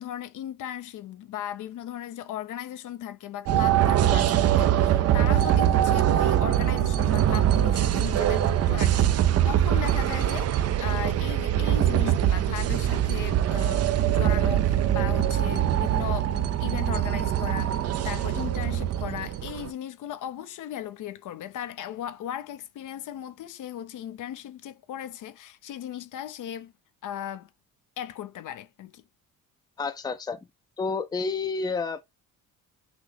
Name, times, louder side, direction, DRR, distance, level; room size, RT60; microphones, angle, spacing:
voice 1, 0.0-9.1 9.4-13.9 14.1-26.7 27.0-27.5 28.0-29.0, left 11 dB, 60° left, 0.6 m, -37 dB
sound 1, 3.5-19.7, right 11 dB, 45° right, 0.4 m, -23 dB
voice 2, 29.8-30.4 30.8-32.0, left 4 dB, 10° left, 0.5 m, -29 dB
5.9 x 2.0 x 3.9 m
cardioid pair, 140°, 35 cm